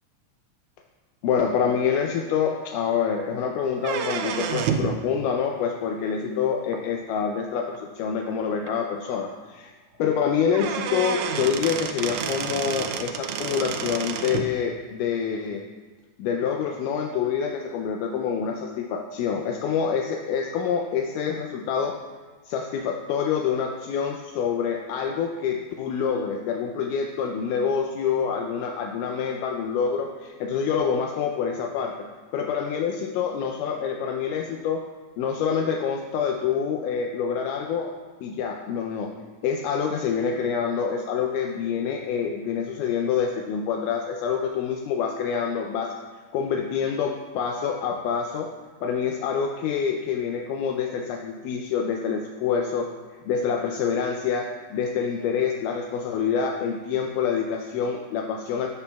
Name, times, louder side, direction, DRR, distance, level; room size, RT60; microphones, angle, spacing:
voice 1, 1.2-9.7 10.0-15.6 16.2-22.0 22.5-32.1 32.3-34.8 35.2-39.1 39.4-45.9 46.3-48.5 48.8-52.9 53.3-58.7, left 7 dB, 80° left, 2 dB, 2.1 m, -26 dB
sound 1, 3.8-5.0 6.7-6.8 7.8-7.9 8.3-8.4 8.7-8.8 10.1-10.2 10.5-14.5, right 7 dB, 80° right, 1.7 m, -29 dB
13.5 x 6.9 x 2.3 m, 1.4 s
omnidirectional pair, 3.7 m